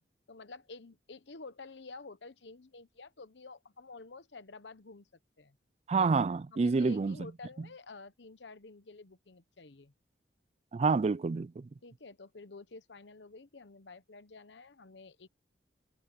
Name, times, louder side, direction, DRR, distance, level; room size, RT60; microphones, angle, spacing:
voice 1, 0.3-5.1 5.4-5.6 6.3-9.9 11.8-15.3, left 3 dB, 80° left, 1.0 m, -50 dB
voice 2, 5.9-7.2 10.7-11.7, right 4 dB, 35° right, 0.3 m, -28 dB
head